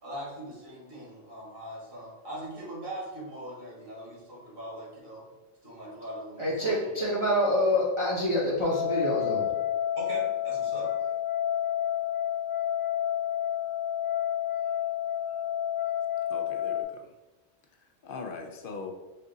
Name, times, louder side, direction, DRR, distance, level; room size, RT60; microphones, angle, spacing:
voice 1, 0.0-5.2 5.6-6.5 9.9-10.9, right 1 dB, 60° right, -5 dB, 1.6 m, -40 dB
voice 2, 6.4-9.5, left 1 dB, 30° right, -7 dB, 0.8 m, -26 dB
sound 1, 8.6-16.8, left 10 dB, 40° left, 1.1 m, -30 dB
voice 3, 16.3-17.1 17.8-18.9, left 4 dB, 60° left, 4 dB, 0.7 m, -41 dB
5.5 x 2.4 x 3.8 m, 1.1 s
omnidirectional pair, 1.1 m